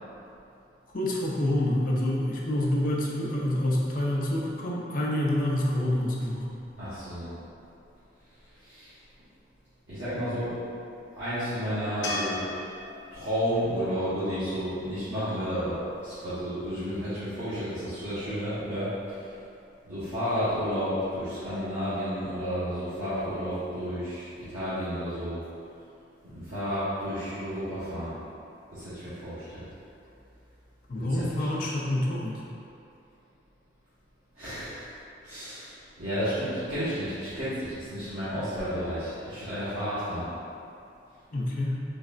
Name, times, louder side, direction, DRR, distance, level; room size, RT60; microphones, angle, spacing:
voice 1, 0.9-6.6 30.9-32.4 41.3-41.8, left 1 dB, 45° left, -3 dB, 0.5 m, -27 dB
voice 2, 6.8-7.3 8.6-8.9 9.9-10.6 11.1-12.5 13.1-18.9 19.8-25.4 26.2-28.1 28.7-29.7 30.9-31.5 34.4-34.9 35.2-40.3, equal, 85° right, -17 dB, 1.2 m, -32 dB
sound 1, 12.0-15.3 18.5-18.6, left 2 dB, 85° left, 0.6 m, -38 dB
4.0 x 3.1 x 2.5 m, 2.6 s
head